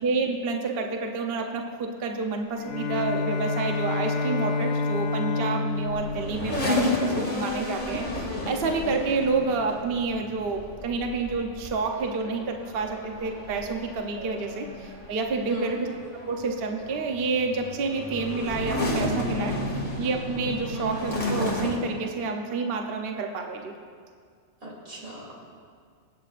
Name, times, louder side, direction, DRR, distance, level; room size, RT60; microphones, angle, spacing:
voice 1, 0.0-15.9 16.1-19.6 20.0-23.7, right 4 dB, 50° right, 3 dB, 0.9 m, -29 dB
Bowed string instrument, 2.6-7.5, left 3 dB, 65° left, 1.0 m, -29 dB
sound 1, 5.7-21.8, left 1 dB, 35° left, 1.7 m, -32 dB
voice 2, 15.5-15.8 20.7-20.9 24.6-25.3, right 3 dB, 85° right, -4 dB, 3.5 m, -37 dB
25.0 x 8.3 x 2.5 m, 2.1 s
omnidirectional pair, 1.4 m